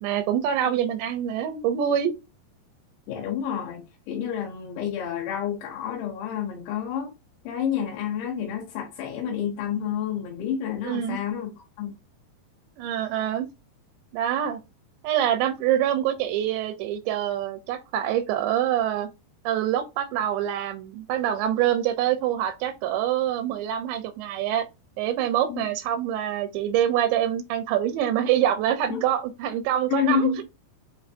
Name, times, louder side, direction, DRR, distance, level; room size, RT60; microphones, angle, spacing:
voice 1, 0.0-2.1 10.8-11.2 12.8-13.5 14.1-14.6 15.0-19.1 19.5-24.6 25.0-30.3, right 10 dB, 85° right, 2.7 m, -25 dB
voice 2, 3.1-3.8 4.1-7.1 7.5-12.0 25.5-25.7 28.9-29.0 29.9-30.4, left 8 dB, 85° left, 3.5 m, -29 dB
7.5 x 2.7 x 2.5 m
omnidirectional pair, 5.2 m